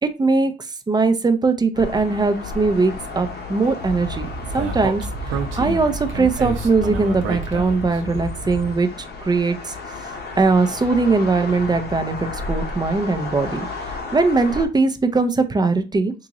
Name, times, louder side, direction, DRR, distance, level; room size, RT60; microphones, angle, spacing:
voice 1, 0.0-4.3 4.5-9.7 10.4-16.1, right 3 dB, 20° right, 8 dB, 0.5 m, -20 dB
sound 1, 1.7-14.7, left 3 dB, 55° left, 0.8 m, -33 dB
Speech, 3.8-8.7, right 3 dB, 85° right, 0.7 m, -29 dB
3.8 x 2.5 x 2.9 m, 0.31 s
cardioid pair, 90°, 20 cm